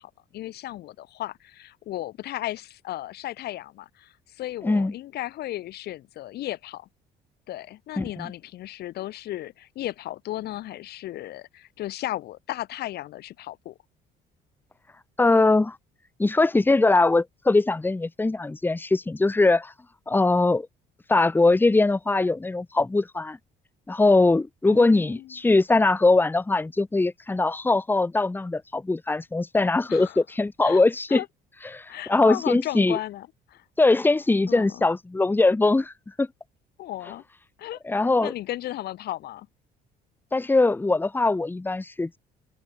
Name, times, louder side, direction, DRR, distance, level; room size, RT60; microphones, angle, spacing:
voice 1, 0.0-6.9 7.5-13.8 24.7-25.3 29.9-30.2 30.6-31.3 31.9-33.6 34.5-34.9 36.8-37.2 37.6-39.5, left 14 dB, 70° left, 4.5 m, -35 dB
voice 2, 4.6-4.9 8.0-8.3 15.2-15.8 16.2-19.7 20.1-20.7 21.1-23.4 23.9-31.2 31.7-33.0 33.8-36.3 37.8-38.3 40.3-42.2, left 3 dB, 10° left, 1.2 m, -21 dB
open air
cardioid pair, 110°, 17 cm